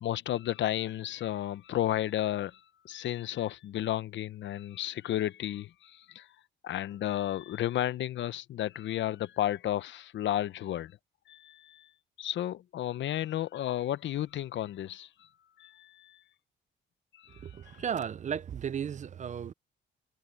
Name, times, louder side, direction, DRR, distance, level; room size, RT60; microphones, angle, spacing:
voice 1, 0.0-6.3 6.6-11.0 11.3-11.9 12.2-15.3 15.6-16.2 17.1-17.8, left 12 dB, 70° left, 0.8 m, -33 dB
voice 2, 17.4-19.5, right 8 dB, 40° right, 0.5 m, -35 dB
cardioid pair, 90°, 20 cm